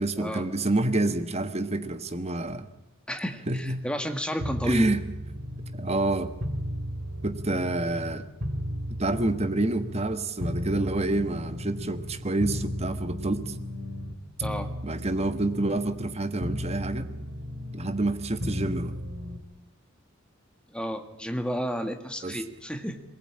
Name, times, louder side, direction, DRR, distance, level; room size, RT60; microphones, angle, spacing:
voice 1, 0.0-2.7 3.5-3.8 4.6-5.0 5.7-6.3 7.2-8.3 9.0-13.5 14.8-17.1 17.7-18.9 22.2-22.4, right 2 dB, 30° right, 9 dB, 1.4 m, -28 dB
voice 2, 3.1-4.9 14.4-14.7 20.7-23.0, equal, 5° left, 6 dB, 1.7 m, -32 dB
sound 1, 4.4-8.2 8.4-14.2 14.4-16.1 16.4-19.4, equal, 60° right, 3.6 m, -35 dB
22.5 x 19.5 x 8.8 m, 0.91 s
head